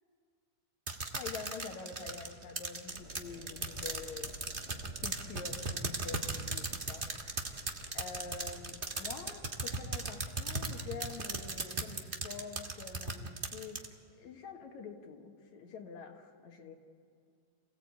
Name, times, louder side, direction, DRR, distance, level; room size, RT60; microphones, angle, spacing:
sound 1, 0.9-13.9, right 3 dB, 45° right, 0.7 m, -37 dB
voice 1, 1.1-4.4 5.0-7.6 7.9-13.8 14.1-16.7, left 5 dB, 70° left, 4 dB, 2.9 m, -46 dB
sound 2, 2.9-11.7, equal, 25° right, 6.6 m, -55 dB
27.0 x 17.5 x 8.4 m, 2.3 s
omnidirectional pair, 3.5 m